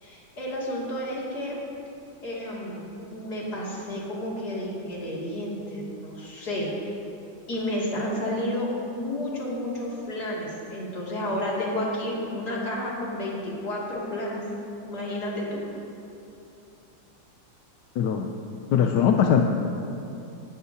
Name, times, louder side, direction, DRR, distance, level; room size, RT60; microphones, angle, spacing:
voice 1, 0.0-1.6 2.2-2.8 3.1-6.9 7.5-14.4 14.8-15.7, left 1 dB, 55° left, -5 dB, 3.1 m, -31 dB
voice 2, 18.0-18.3 18.7-19.4, left 8 dB, 70° left, 3 dB, 1.2 m, -21 dB
19.0 x 12.5 x 2.8 m, 2.8 s
omnidirectional pair, 2.1 m